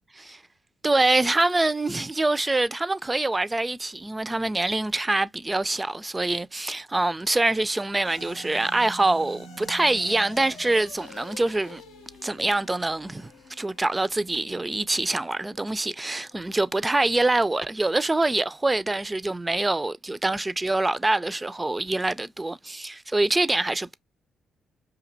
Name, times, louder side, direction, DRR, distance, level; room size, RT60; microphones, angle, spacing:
voice 1, 0.8-11.8 12.2-13.3 13.6-23.9, right 2 dB, 20° right, 0.3 m, -25 dB
sound 1, 8.0-16.6, equal, 85° left, 0.6 m, -47 dB
5.0 x 2.6 x 2.5 m
hypercardioid pair, 45°, 0 cm